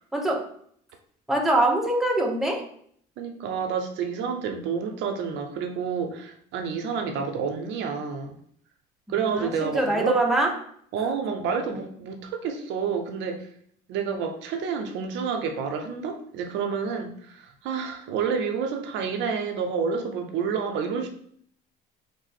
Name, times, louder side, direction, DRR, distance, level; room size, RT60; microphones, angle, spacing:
voice 1, 0.1-0.5 1.3-2.6 9.1-10.6, right 1 dB, ahead, 1 dB, 0.6 m, -24 dB
voice 2, 3.2-8.4 9.1-10.1 10.9-13.5 13.9-21.1, right 6 dB, 75° right, 5 dB, 0.6 m, -29 dB
3.2 x 2.0 x 4.0 m, 0.62 s
cardioid pair, 95°, 19 cm